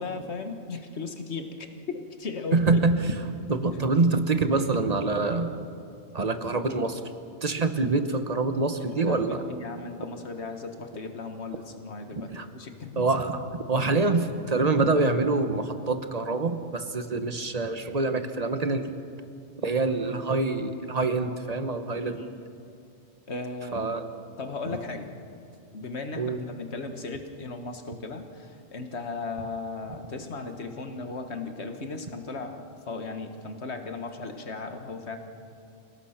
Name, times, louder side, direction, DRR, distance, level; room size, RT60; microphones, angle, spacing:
voice 1, 0.0-2.8 9.0-13.1 22.0-22.4 23.3-23.9 24.4-25.1 25.7-35.2, left 3 dB, 70° left, 6 dB, 1.8 m, -36 dB
voice 2, 2.5-3.2 3.5-5.5 6.1-7.0 7.4-9.4 12.3-12.4 12.9-13.3 13.7-18.9 19.6-22.2 23.7-24.1 26.2-26.4, right 3 dB, 35° right, 9 dB, 1.2 m, -25 dB
27.5 x 18.0 x 5.9 m, 2.5 s
omnidirectional pair, 1.2 m